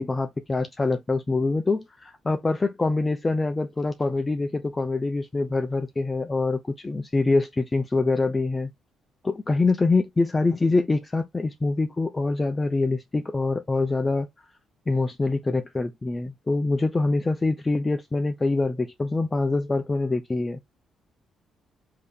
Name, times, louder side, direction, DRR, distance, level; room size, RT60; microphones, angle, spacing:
voice 1, 0.0-8.7 9.2-14.3 14.9-20.6, left 3 dB, 20° left, 0.4 m, -25 dB
3.3 x 2.8 x 3.4 m
cardioid pair, 90°, 0 cm